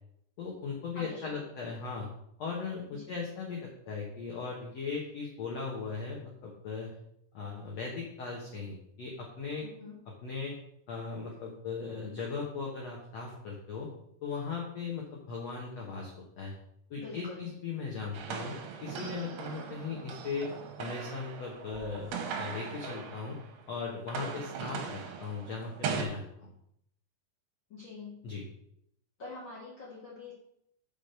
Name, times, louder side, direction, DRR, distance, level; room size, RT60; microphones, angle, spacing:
voice 1, 0.4-2.1 2.4-7.0 7.3-9.7 10.1-10.5 10.9-13.9 14.2-16.5 16.9-18.6 18.8-20.5 20.8-22.1 22.4-23.4 23.7-26.5 28.2-28.5, left 4 dB, 90° left, -1 dB, 1.4 m, -38 dB
voice 2, 0.9-1.4 2.9-3.2 9.6-10.0 16.9-17.5 27.7-28.2 29.2-30.3, left 3 dB, 50° left, -6 dB, 1.4 m, -45 dB
sound 1, 18.1-23.6 23.9-26.0, right 6 dB, 80° right, 3.0 m, -39 dB
5.9 x 5.2 x 6.6 m, 0.74 s
omnidirectional pair, 4.8 m